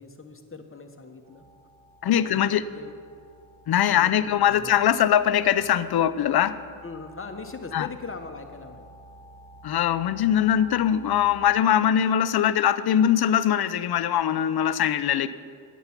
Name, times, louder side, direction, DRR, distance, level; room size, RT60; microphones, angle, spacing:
voice 1, 0.0-1.4 2.0-3.0 3.9-4.7 6.8-8.9, left 4 dB, 25° left, 6 dB, 1.1 m, -40 dB
sound 1, 1.2-11.5, right 1 dB, 30° right, 1.9 m, -51 dB
voice 2, 2.0-2.6 3.7-6.6 7.7-7.9 9.6-15.3, left 10 dB, 50° left, 14 dB, 0.6 m, -22 dB
10.5 x 8.4 x 5.9 m, 2.3 s
cardioid pair, 65°, 49 cm